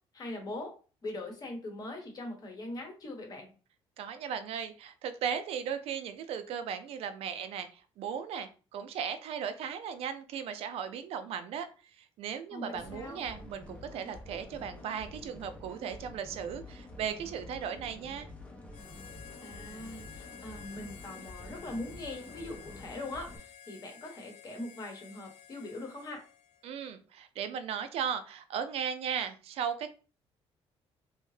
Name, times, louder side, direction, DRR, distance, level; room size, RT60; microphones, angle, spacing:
voice 1, 0.1-0.7 1.0-3.5 12.5-13.2 19.4-26.2, left 2 dB, 35° left, 3 dB, 0.9 m, -41 dB
voice 2, 4.0-11.7 12.0-18.3 26.6-29.9, right 7 dB, 65° right, 9 dB, 0.4 m, -37 dB
sound 1, 12.7-23.4, left 2 dB, 10° left, 0.5 m, -48 dB
Harmonica, 18.7-26.7, left 8 dB, 65° left, 0.4 m, -52 dB
2.7 x 2.1 x 3.1 m, 0.36 s
cardioid pair, 130°, 11 cm